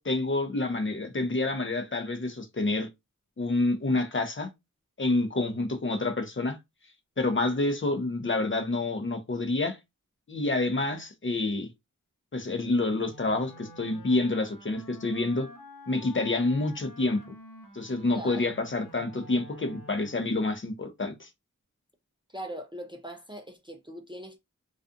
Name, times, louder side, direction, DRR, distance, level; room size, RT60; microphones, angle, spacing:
voice 1, 0.0-2.9 3.4-4.5 5.0-6.6 7.2-9.8 10.3-11.7 12.3-15.5 15.9-17.2 17.7-21.3, left 2 dB, 40° left, 0.6 m, -28 dB
Wind instrument woodwind instrument, 13.0-20.4, left 1 dB, 75° left, 1.0 m, -49 dB
voice 2, 18.1-18.5 22.3-24.4, equal, 15° right, 0.4 m, -41 dB
2.4 x 2.3 x 2.5 m
wide cardioid pair, 50°, 32 cm